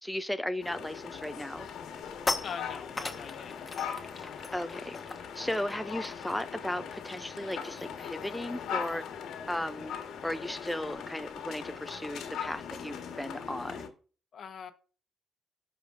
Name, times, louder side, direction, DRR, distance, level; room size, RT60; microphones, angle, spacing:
voice 1, 0.0-1.7 4.5-5.0 5.4-9.0 9.5-9.9 10.2-13.9, left 1 dB, 5° left, 0.4 m, -36 dB
sound 1, 0.6-13.9, left 7 dB, 80° left, 1.3 m, -40 dB
sound 2, 1.9-7.4 7.7-8.0 8.2-13.2, left 3 dB, 20° left, 1.1 m, -41 dB
voice 2, 2.4-3.7 14.3-14.7, left 6 dB, 55° left, 1.0 m, -42 dB
15.0 x 5.0 x 2.5 m
cardioid pair, 90°, 0 cm